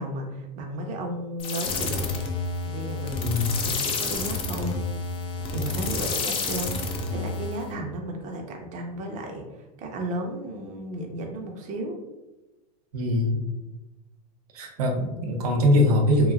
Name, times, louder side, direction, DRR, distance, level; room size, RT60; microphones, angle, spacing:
voice 1, 0.0-2.1 2.6-4.8 5.5-12.0, right 1 dB, 40° right, 2 dB, 0.7 m, -34 dB
sound 1, 1.4-7.7, left 3 dB, 30° left, 0.4 m, -29 dB
voice 2, 3.2-3.6 12.9-13.4 14.5-16.3, left 1 dB, 75° right, 1 dB, 0.7 m, -22 dB
2.9 x 2.5 x 2.5 m, 1.0 s
hypercardioid pair, 110°, 19 cm